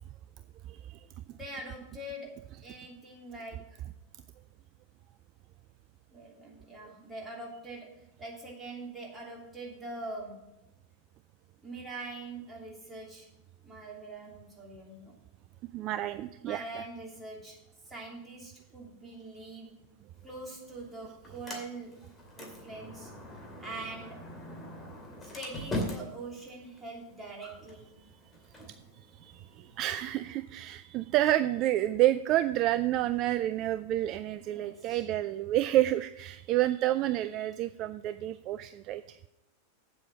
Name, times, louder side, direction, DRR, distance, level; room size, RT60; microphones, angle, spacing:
voice 1, 0.7-1.0 15.7-16.8 29.2-39.2, right 14 dB, 40° right, 13 dB, 0.3 m, -29 dB
voice 2, 1.3-3.8 6.1-10.5 11.6-13.3 13.6-15.1 16.4-19.8 20.2-22.1 22.3-23.1 23.6-24.3 25.2-27.9 34.5-35.0, right 2 dB, 10° right, -3 dB, 3.1 m, -43 dB
Sliding door, 20.1-30.1, left 1 dB, 15° left, 2.5 m, -43 dB
8.5 x 7.6 x 5.7 m, 0.91 s
figure-of-eight pair, 90°, 0 cm